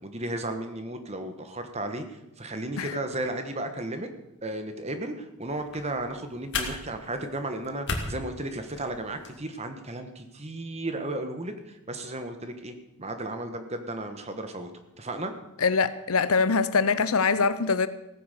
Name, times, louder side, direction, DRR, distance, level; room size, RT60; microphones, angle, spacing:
voice 1, 0.0-4.1 4.4-14.7 15.0-15.3, right 1 dB, 30° right, 1.3 m, -34 dB
sound 1, 5.4-9.4, left 3 dB, 55° left, 2.2 m, -37 dB
voice 2, 15.6-17.9, left 5 dB, 75° left, 0.8 m, -23 dB
16.5 x 9.6 x 6.7 m
head